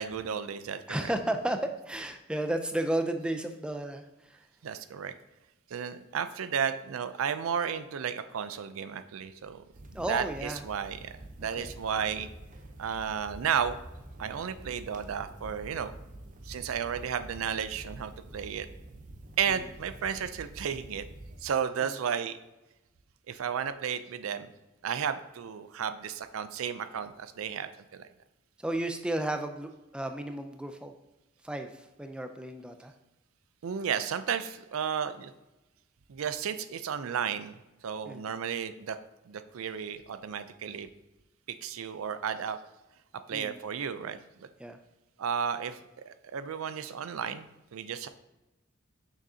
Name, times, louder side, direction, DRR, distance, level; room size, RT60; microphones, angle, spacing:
voice 1, 0.0-1.1 4.6-5.1 5.7-9.6 10.0-11.1 11.4-12.3 12.8-13.8 14.2-15.9 16.5-18.7 19.4-21.0 21.4-22.4 23.3-24.5 24.8-28.1 33.6-35.3 36.1-37.6 37.8-39.0 39.3-40.9 41.6-42.6 43.3-44.5 45.2-45.8 46.1-48.1, right 7 dB, 85° right, 11 dB, 0.4 m, -33 dB
voice 2, 0.9-1.6 1.9-4.3 9.9-10.6 11.6-11.7 19.5-19.6 21.8-21.9 28.6-30.9 31.4-32.9 38.0-38.2 43.3-43.6 44.6-44.8, right 1 dB, 5° right, 6 dB, 0.4 m, -33 dB
sound 1, 9.7-21.5, right 1 dB, 40° right, 0.6 m, -47 dB
6.6 x 6.2 x 2.7 m, 0.99 s
head